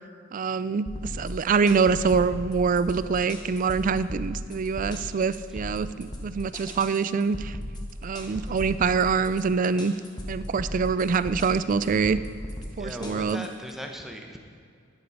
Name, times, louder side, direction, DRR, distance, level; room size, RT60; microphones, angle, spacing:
voice 1, 0.3-7.6 8.0-9.9 10.3-12.2 12.8-13.5, right 5 dB, 45° right, 14 dB, 0.4 m, -25 dB
sound 1, 0.9-13.7, left 1 dB, 20° left, 1.3 m, -37 dB
voice 2, 8.2-8.6 12.7-14.4, equal, ahead, 2 dB, 1.0 m, -39 dB
10.0 x 9.9 x 5.4 m, 2.2 s
head